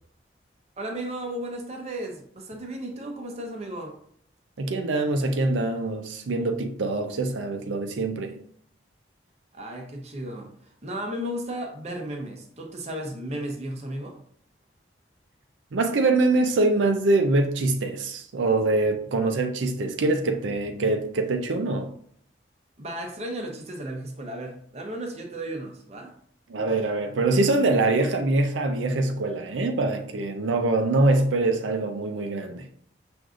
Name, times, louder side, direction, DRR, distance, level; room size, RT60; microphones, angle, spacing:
voice 1, 0.8-3.9 9.5-10.5 10.8-14.2 22.8-26.1, right 1 dB, 35° right, 0.7 m, -34 dB
voice 2, 4.6-8.3 15.7-21.9 26.5-32.7, right 2 dB, 85° right, 0.5 m, -24 dB
6.1 x 2.6 x 2.4 m
head